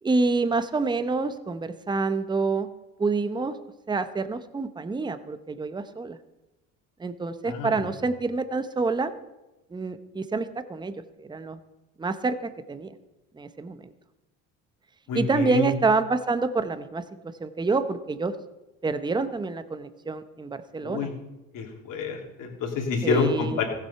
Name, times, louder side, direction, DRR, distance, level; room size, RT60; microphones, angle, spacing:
voice 1, 0.0-2.7 3.0-3.6 3.9-6.2 7.0-9.1 9.7-11.6 12.0-13.0 13.3-13.9 15.1-18.4 18.8-21.1 23.0-23.6, right 3 dB, 10° right, 12 dB, 0.7 m, -27 dB
voice 2, 7.4-7.9 15.1-15.7 20.8-21.1 21.5-23.6, left 4 dB, 65° left, 1 dB, 2.9 m, -27 dB
15.0 x 7.6 x 5.7 m, 1.0 s
supercardioid pair, 90°, 36 cm